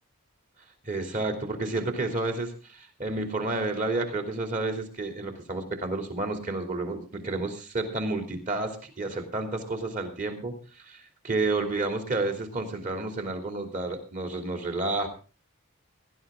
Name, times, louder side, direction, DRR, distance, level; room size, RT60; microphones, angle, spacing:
voice 1, 0.9-10.6 10.9-15.1, right 2 dB, 35° right, 4 dB, 2.9 m, -30 dB
18.5 x 11.5 x 3.7 m, 0.34 s
head